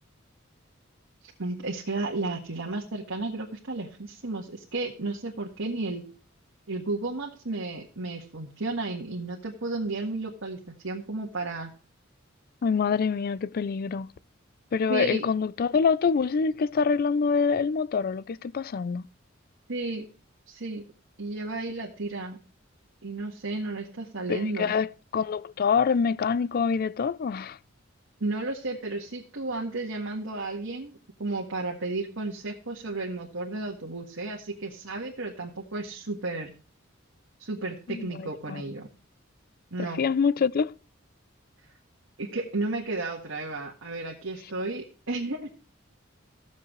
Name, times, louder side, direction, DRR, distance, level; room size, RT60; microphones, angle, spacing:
voice 1, 1.2-6.1 6.7-10.6 10.8-11.7 14.9-15.3 19.7-20.1 20.5-20.8 21.2-22.4 23.0-24.7 28.2-36.5 37.4-38.9 39.7-40.0 42.2-45.5, right 2 dB, 80° right, 1.7 m, -33 dB
voice 2, 12.6-14.1 14.7-19.1 24.3-24.9 25.1-27.6 37.9-38.6 39.8-40.7, left 5 dB, 50° left, 0.4 m, -25 dB
15.5 x 7.3 x 3.1 m
head